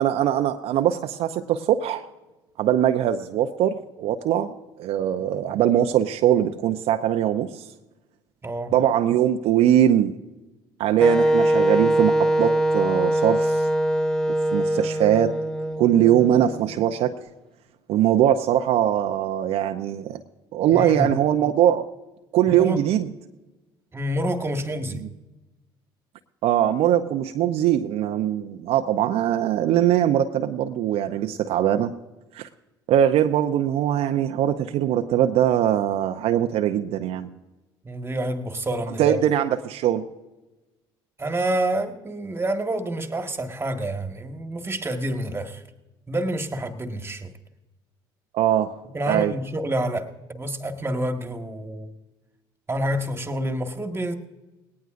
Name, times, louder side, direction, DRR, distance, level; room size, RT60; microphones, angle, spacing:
voice 1, 0.0-2.1 2.6-4.5 4.8-7.7 8.7-10.2 10.8-13.7 14.5-15.3 15.8-17.2 17.9-20.2 20.5-21.9 22.3-23.1 26.4-32.0 32.3-32.5 32.9-37.3 39.0-40.1 48.3-48.8 49.1-49.3, right 11 dB, 60° right, 6 dB, 0.7 m, -21 dB
voice 2, 8.4-8.7 20.7-21.1 22.5-22.8 23.9-25.0 37.8-39.2 41.2-45.6 46.1-47.3 48.9-51.9 52.7-54.1, right 1 dB, 20° right, 6 dB, 1.6 m, -28 dB
Wind instrument woodwind instrument, 11.0-16.8, right 1 dB, 5° left, 0.8 m, -22 dB
19.0 x 18.0 x 2.5 m, 1.1 s
hypercardioid pair, 60°, 12 cm